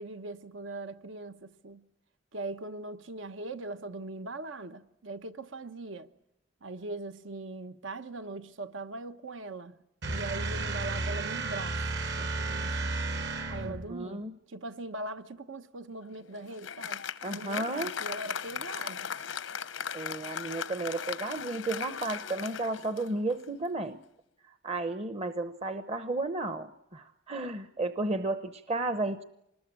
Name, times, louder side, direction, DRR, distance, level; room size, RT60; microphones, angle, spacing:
voice 1, 0.0-1.8 2.3-6.1 6.6-9.8 10.1-11.8 12.2-13.0 13.5-17.0 17.3-19.1, right 2 dB, 80° right, 1.1 m, -40 dB
sound 1, 10.0-13.9, right 3 dB, 65° right, 2.0 m, -33 dB
voice 2, 13.7-14.3 17.2-17.9 19.9-24.0 24.6-29.2, right 2 dB, 35° right, 0.9 m, -33 dB
Applause, 16.0-23.6, left 7 dB, 85° left, 0.9 m, -38 dB
26.0 x 20.5 x 8.8 m
head